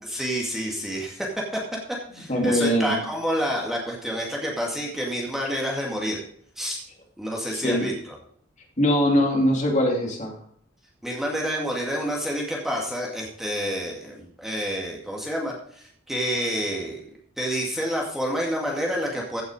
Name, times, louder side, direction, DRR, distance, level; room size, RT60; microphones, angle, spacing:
voice 1, 0.0-1.6 2.1-6.2 6.6-6.8 7.2-8.2 11.0-17.0 17.4-19.4, equal, ahead, -3 dB, 2.2 m, -28 dB
voice 2, 2.3-3.0 7.5-7.9 8.8-10.3, equal, 35° left, 0 dB, 2.8 m, -22 dB
15.5 x 6.4 x 5.0 m, 0.63 s
head